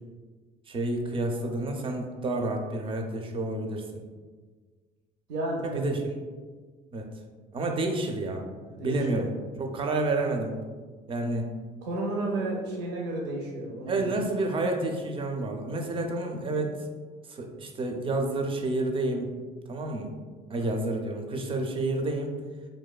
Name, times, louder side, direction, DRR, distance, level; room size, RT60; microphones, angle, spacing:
voice 1, 0.7-4.0 5.7-6.2 6.9-7.1 7.5-8.4 8.8-9.3 9.6-10.5 11.1-11.5 13.9-16.9 17.3-19.3 19.7-20.1 20.5-22.3, right 2 dB, 30° right, 3 dB, 0.4 m, -29 dB
voice 2, 5.3-6.0 8.7-9.3 11.8-14.1 20.6-20.7, right 2 dB, 90° right, -2 dB, 0.6 m, -32 dB
2.6 x 2.2 x 2.3 m, 1.4 s
cardioid pair, 110°, 17 cm